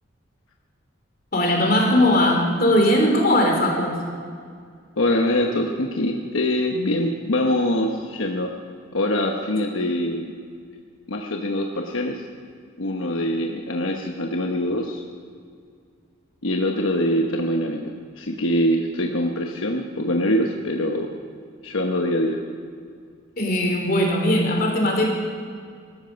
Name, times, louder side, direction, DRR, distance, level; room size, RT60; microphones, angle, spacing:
voice 1, 1.3-4.0 23.4-25.1, left 1 dB, 45° left, 1 dB, 3.2 m, -19 dB
voice 2, 5.0-8.5 8.9-10.3 11.1-12.2 12.8-15.0 16.4-21.1 21.6-22.4, left 1 dB, 80° left, 2 dB, 1.1 m, -24 dB
18.5 x 13.0 x 5.2 m, 2.2 s
head